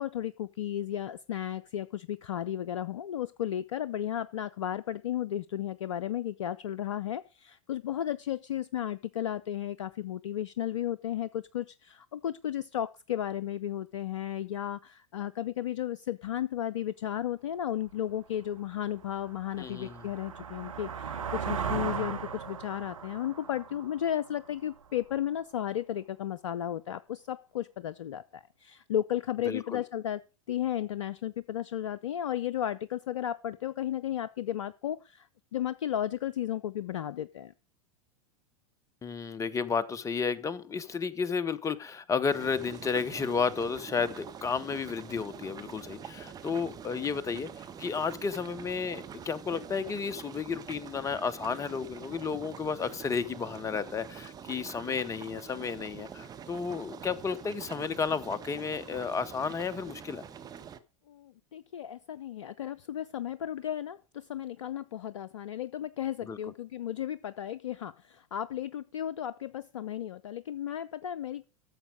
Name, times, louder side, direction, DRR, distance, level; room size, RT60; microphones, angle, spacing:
voice 1, 0.0-30.2 30.5-37.5 61.1-71.4, left 11 dB, 65° left, 17 dB, 0.5 m, -34 dB
sound 1, 17.9-18.0 18.5-25.1, right 7 dB, 75° right, 1.2 m, -38 dB
voice 2, 19.6-20.0 29.5-29.8 39.0-60.2 66.3-66.4, left 5 dB, 20° left, 17 dB, 0.9 m, -32 dB
sound 2, 42.3-60.8, right 7 dB, 20° right, 1.0 m, -45 dB
13.0 x 7.1 x 5.0 m, 0.32 s
figure-of-eight pair, 85°, 17 cm